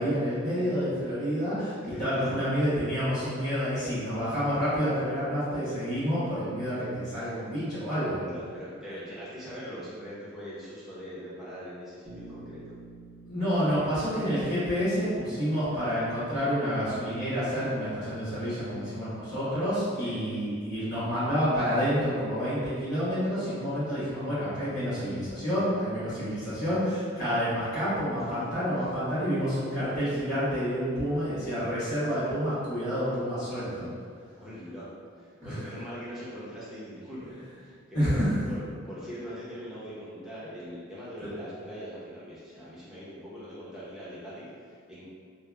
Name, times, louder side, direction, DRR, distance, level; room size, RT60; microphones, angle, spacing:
voice 1, 0.0-8.2 13.3-33.9 35.4-35.5 37.9-38.3, equal, 40° left, -18 dB, 1.5 m, -29 dB
voice 2, 1.8-2.4 8.1-12.6 20.0-20.2 28.3-28.4 34.4-34.9 35.2-37.7 38.0-38.2 38.5-45.1, equal, ahead, -11 dB, 0.8 m, -41 dB
Bass guitar, 12.0-16.1, right 2 dB, 70° right, 0.6 m, -50 dB
3.2 x 2.2 x 2.2 m, 2.1 s
head